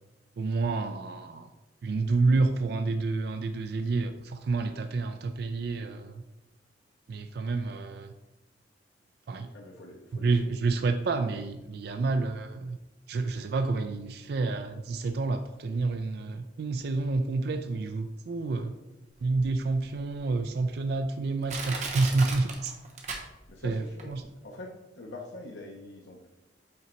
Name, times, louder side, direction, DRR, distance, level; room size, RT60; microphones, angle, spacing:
voice 1, 0.4-1.5 1.8-6.2 7.1-8.1 9.3-9.5 10.2-12.8 13.1-18.7 19.2-22.7 23.6-24.2, right 3 dB, 60° right, 8 dB, 0.3 m, -29 dB
voice 2, 9.5-10.5 23.5-24.2 24.4-26.3, left 1 dB, 90° left, -1 dB, 0.8 m, -44 dB
Crushing, 19.4-19.5 20.1-20.2 20.9-21.0 21.5-23.7 24.0-24.1, right 4 dB, 40° right, 0.9 m, -36 dB
5.6 x 3.9 x 4.3 m, 1.0 s
head